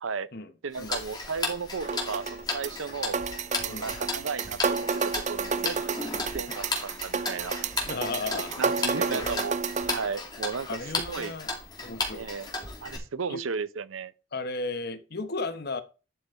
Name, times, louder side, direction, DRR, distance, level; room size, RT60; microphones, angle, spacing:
voice 1, 0.6-3.2 3.6-6.0 6.3-7.5 8.6-9.6 9.9-10.8 11.1-11.3 12.1-12.5 12.8-14.1, right 5 dB, 85° right, 0.7 m, -34 dB
Tick-tock, 0.7-13.0, left 3 dB, 20° left, 2.6 m, -35 dB
sound 1, 1.8-10.0, right 5 dB, 35° right, 0.5 m, -31 dB
voice 2, 7.9-8.6 9.1-9.2 10.6-11.5 11.8-12.2 13.3-13.4 14.3-15.8, left 3 dB, 55° left, 1.1 m, -34 dB
11.5 x 5.3 x 4.4 m
head